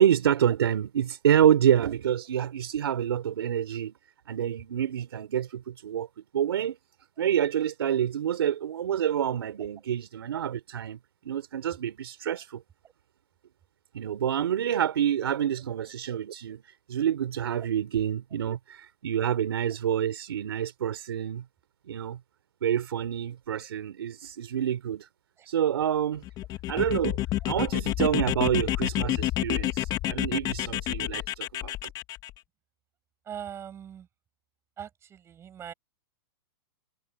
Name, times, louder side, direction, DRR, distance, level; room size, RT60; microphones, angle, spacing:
voice 1, 0.0-3.9 4.3-6.1 6.3-6.8 7.2-11.0 11.2-12.6 13.9-21.4 21.9-22.2 22.6-25.1 25.5-26.2 26.7-27.2 27.5-31.7, right 9 dB, 80° right, 3.5 m, -27 dB
sound 1, 26.2-32.3, left 15 dB, 30° left, 1.3 m, -29 dB
voice 2, 33.3-34.1 34.8-35.7, right 9 dB, 20° right, 6.9 m, -41 dB
hypercardioid pair, 140°, 13 cm